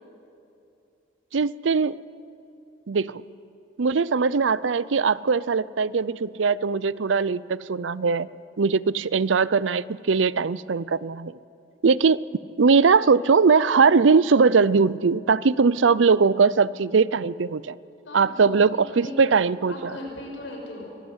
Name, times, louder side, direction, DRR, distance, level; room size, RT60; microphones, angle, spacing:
voice 1, 1.3-2.0 2.9-3.2 3.8-8.3 8.6-11.3 11.8-12.2 12.6-17.8 18.1-19.9, right 5 dB, 90° right, 19 dB, 0.6 m, -20 dB
voice 2, 18.1-19.3 19.7-20.9, left 1 dB, 90° left, 0 dB, 5.3 m, -38 dB
24.5 x 19.0 x 8.1 m, 2.7 s
head